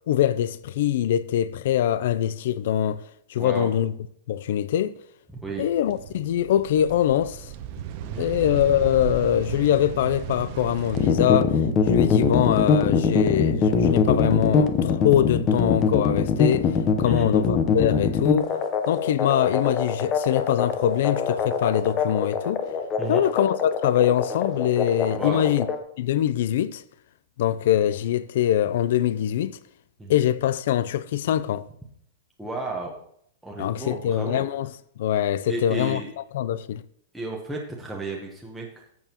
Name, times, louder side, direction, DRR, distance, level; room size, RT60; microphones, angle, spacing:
voice 1, 0.1-3.0 3.3-3.9 4.3-5.0 5.6-7.5 8.2-11.6 11.9-18.5 18.9-22.6 23.1-25.7 26.0-26.8 27.4-29.6 30.1-31.7 33.6-34.7 35.0-36.0 36.3-36.8, left 11 dB, 60° left, 0.4 m, -23 dB
voice 2, 3.4-3.7 5.4-5.7 8.0-8.3 17.0-17.3 23.0-23.2 25.2-25.5 30.0-30.2 32.4-32.9 33.4-34.5 35.5-36.1 37.1-38.9, right 2 dB, 5° right, 0.9 m, -33 dB
sound 1, 5.9-11.1, right 9 dB, 40° right, 0.7 m, -35 dB
sound 2, 10.9-25.8, left 6 dB, 25° left, 0.8 m, -22 dB
14.0 x 7.0 x 2.9 m
supercardioid pair, 165°, 0 cm